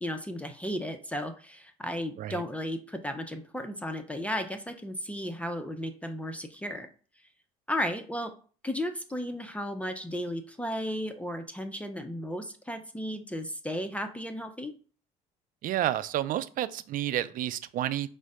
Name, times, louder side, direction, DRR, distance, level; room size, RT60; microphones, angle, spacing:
voice 1, 0.0-6.9 7.7-8.3 8.6-14.7, equal, 10° left, 7 dB, 0.6 m, -34 dB
voice 2, 15.6-18.1, right 12 dB, 55° right, 14 dB, 0.4 m, -30 dB
5.1 x 2.1 x 4.8 m, 0.40 s
supercardioid pair, 75°, 17 cm